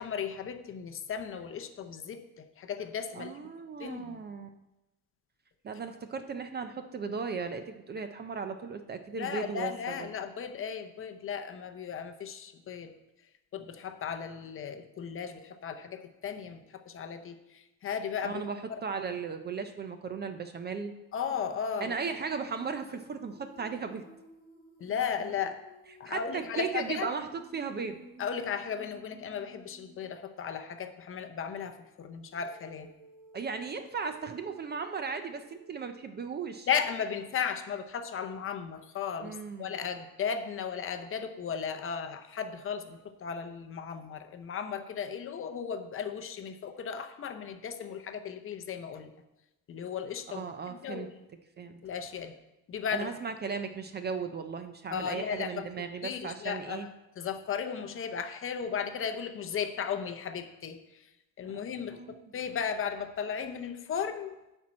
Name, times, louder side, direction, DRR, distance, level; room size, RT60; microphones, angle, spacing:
voice 1, 0.0-3.3 3.8-4.2 9.2-12.9 13.5-18.4 18.7-18.8 21.1-21.9 24.8-25.6 26.0-27.1 28.2-32.9 36.7-49.1 49.7-51.1 51.8-52.3 52.7-53.1 54.9-55.7 56.0-56.9 57.2-60.8 61.4-62.0 62.3-64.4, left 7 dB, 35° left, 8 dB, 0.7 m, -35 dB
voice 2, 3.1-4.5 5.6-10.1 18.2-20.9 21.8-24.0 26.0-28.0 33.3-36.7 39.2-39.7 50.3-51.1 51.6-51.8 52.9-56.9 61.9-62.2, right 5 dB, 30° right, 8 dB, 0.4 m, -36 dB
Female singing, 21.2-30.1 32.3-36.5, equal, 20° left, 3.9 m, -54 dB
10.0 x 4.5 x 7.3 m, 0.95 s
cardioid pair, 170°, 36 cm